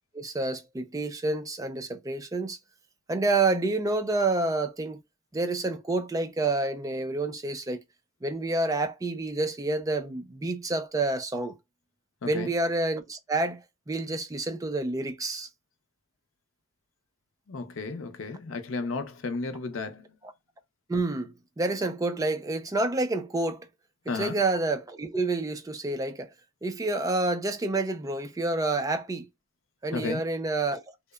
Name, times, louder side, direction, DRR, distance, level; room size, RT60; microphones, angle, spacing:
voice 1, 0.1-2.6 3.1-5.0 5.3-7.8 8.2-11.5 12.2-15.5 20.2-20.3 20.9-23.7 24.1-26.3 26.6-29.3 29.8-30.8, right 2 dB, 20° right, 0.4 m, -28 dB
voice 2, 12.2-12.5 17.5-20.0 24.1-24.4 29.9-30.2, left 3 dB, 80° left, 0.5 m, -33 dB
2.7 x 2.1 x 2.2 m
head